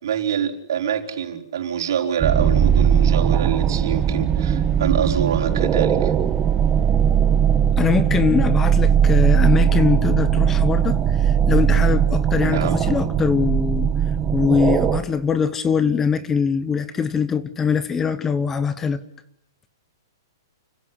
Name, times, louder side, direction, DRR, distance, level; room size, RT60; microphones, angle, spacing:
voice 1, 0.0-6.1 12.4-12.8, right 8 dB, 65° right, 4.8 m, -25 dB
sound 1, 2.2-15.0, right 8 dB, 15° right, 1.5 m, -19 dB
voice 2, 7.8-13.9 14.3-19.0, left 6 dB, 10° left, 1.0 m, -22 dB
30.0 x 16.0 x 9.9 m
hypercardioid pair, 160°, 2 cm